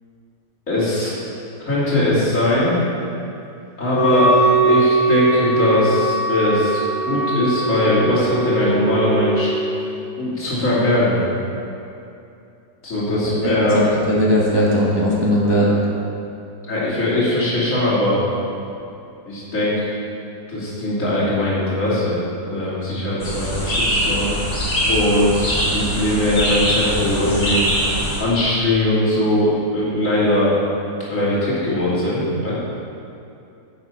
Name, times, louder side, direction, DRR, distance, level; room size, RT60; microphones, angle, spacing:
voice 1, 0.7-1.1 1.6-2.8 3.8-4.3 4.6-6.8 7.0-9.5 10.2-11.2 12.8-13.8 16.7-18.2 19.3-19.9 20.5-22.2 22.5-24.4 24.9-27.6 28.2-30.5 31.1-32.5, left 1 dB, 50° left, -9 dB, 3.0 m, -20 dB
Wind instrument woodwind instrument, 3.9-9.8, right 2 dB, 55° right, 3.3 m, -21 dB
voice 2, 13.2-15.8, equal, 20° right, -5 dB, 0.9 m, -18 dB
sound 1, 23.2-28.2, equal, 80° left, 3.0 m, -22 dB
9.5 x 7.4 x 5.5 m, 2.7 s
omnidirectional pair, 1.8 m